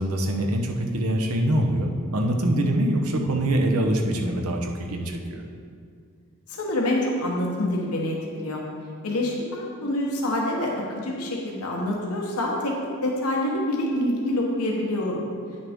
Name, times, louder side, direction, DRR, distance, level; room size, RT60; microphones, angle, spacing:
voice 1, 0.0-5.4, right 1 dB, 75° right, 2 dB, 0.9 m, -24 dB
voice 2, 6.5-8.2 8.4-8.6 9.0-12.7 13.0-15.2, left 1 dB, 80° left, -2 dB, 1.1 m, -26 dB
9.6 x 6.5 x 3.6 m, 2.2 s
head